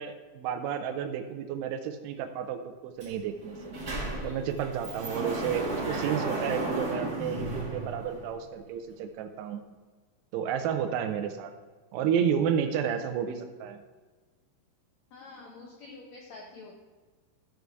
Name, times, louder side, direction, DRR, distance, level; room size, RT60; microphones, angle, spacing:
voice 1, 0.0-3.6 4.2-9.6 10.3-11.5 11.9-13.8, right 8 dB, 85° right, 6 dB, 2.7 m, -31 dB
Sliding door, 3.0-3.1 3.4-8.4, right 2 dB, 35° right, 1.5 m, -34 dB
voice 2, 15.1-16.8, left 3 dB, 80° left, -1 dB, 1.6 m, -48 dB
14.0 x 5.5 x 4.6 m, 1.3 s
omnidirectional pair, 4.7 m